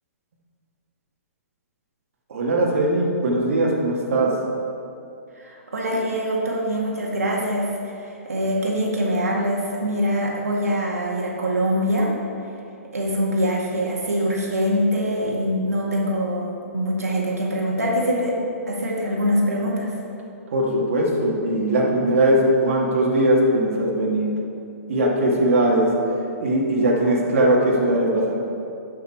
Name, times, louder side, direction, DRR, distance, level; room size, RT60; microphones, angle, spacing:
voice 1, 2.3-4.4 20.5-24.4 24.9-25.9 26.4-28.3, right 1 dB, 60° right, -2 dB, 1.9 m, -20 dB
voice 2, 5.4-7.7 8.0-12.1 12.9-18.4 18.7-19.9, equal, 80° right, -3 dB, 1.9 m, -24 dB
13.0 x 5.8 x 4.6 m, 2.7 s
figure-of-eight pair, 125°, 8 cm